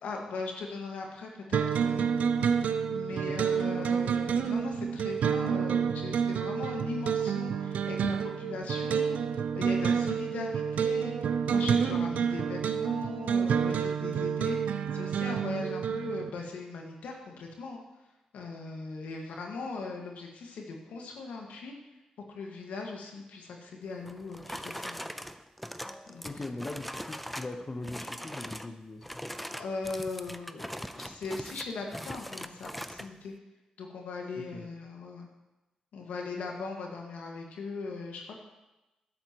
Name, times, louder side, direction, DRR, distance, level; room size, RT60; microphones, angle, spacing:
voice 1, 0.0-2.1 2.9-9.2 9.5-17.8 18.3-21.7 22.3-25.0 26.1-26.3 29.4-33.3 33.8-35.3 35.9-38.3, left 3 dB, 75° left, 1 dB, 1.8 m, -39 dB
sound 1, 1.5-16.3, right 7 dB, 75° right, 0.6 m, -29 dB
voice 2, 3.1-3.5 26.2-29.2 34.3-34.7, left 2 dB, 35° left, 5 dB, 1.0 m, -40 dB
sound 2, 24.1-27.6 27.8-28.7 29.0-33.1, equal, ahead, 0.7 m, -41 dB
13.0 x 11.0 x 3.1 m, 1.0 s
supercardioid pair, 40°, 3 cm